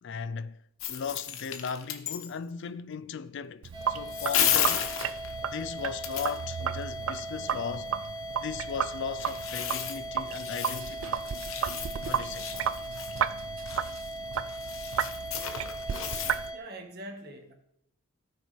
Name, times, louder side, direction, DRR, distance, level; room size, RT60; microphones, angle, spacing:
voice 1, 0.0-0.6 0.9-4.9 5.5-8.0 8.4-11.2 12.1-12.5, left 6 dB, 60° left, 0.4 m, -37 dB
sound 1, 0.8-2.3 4.1-5.3 6.0-6.4 9.0-16.5, left 9 dB, 75° left, 1.1 m, -33 dB
Sink (filling or washing), 3.6-16.5, right 8 dB, 75° right, 0.4 m, -34 dB
sound 2, 3.7-16.6, right 1 dB, 25° right, 2.1 m, -39 dB
voice 2, 16.5-17.5, right 1 dB, 50° right, 1.8 m, -43 dB
17.5 x 6.4 x 3.5 m
head